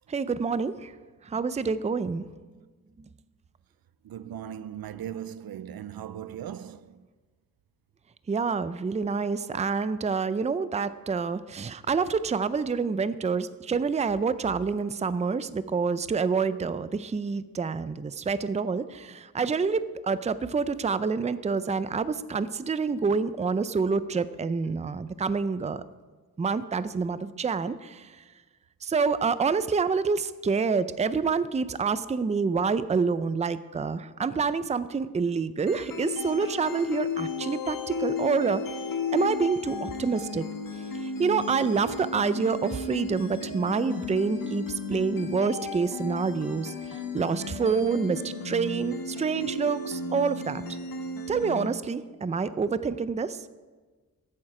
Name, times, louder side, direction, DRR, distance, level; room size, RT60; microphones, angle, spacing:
voice 1, 0.1-0.9 1.2-2.2 3.0-3.1 8.3-25.8 26.4-28.2 28.8-38.6 39.1-40.4 40.8-50.6 51.3-53.4, right 5 dB, 20° right, 0.4 m, -27 dB
voice 2, 4.0-7.0, right 9 dB, 75° right, 0.5 m, -38 dB
sound 1, 35.7-51.7, left 4 dB, 65° left, 1.6 m, -34 dB
14.0 x 9.0 x 4.9 m
wide cardioid pair, 90°, 36 cm